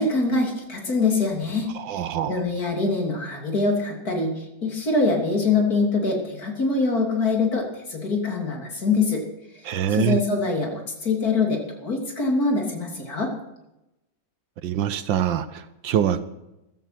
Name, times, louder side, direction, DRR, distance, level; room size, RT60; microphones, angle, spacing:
voice 1, 0.0-9.2 9.5-9.6 9.9-13.3, left 3 dB, 45° left, 1 dB, 3.5 m, -24 dB
voice 2, 1.7-2.4 9.6-10.2 14.6-16.2, right 10 dB, 75° right, 13 dB, 1.5 m, -24 dB
14.5 x 13.0 x 6.0 m, 0.92 s
omnidirectional pair, 2.2 m